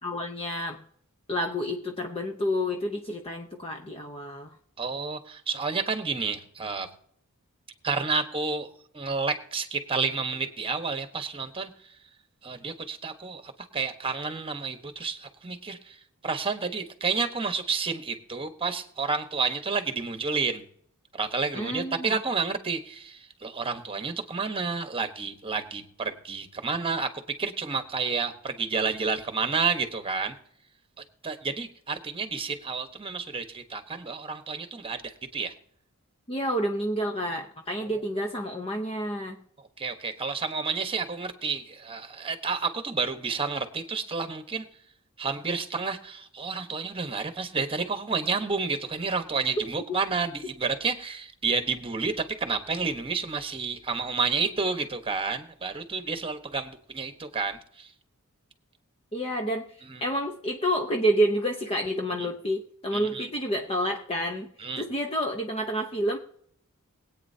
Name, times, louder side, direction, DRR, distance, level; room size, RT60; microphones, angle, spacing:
voice 1, 0.0-0.8 1.3-4.6 21.5-22.2 36.3-39.4 49.9-50.0 59.1-59.7 60.0-64.5 64.8-66.2, equal, 25° left, 3 dB, 0.9 m, -29 dB
voice 2, 4.8-6.9 7.8-8.7 8.9-11.9 12.4-20.7 21.1-30.3 31.2-35.5 37.8-38.0 39.6-44.7 45.2-57.9 59.8-60.0 62.2-62.3 62.9-63.3 64.6-64.8, right 4 dB, 25° right, 8 dB, 1.2 m, -30 dB
22.5 x 8.8 x 2.8 m, 0.64 s
head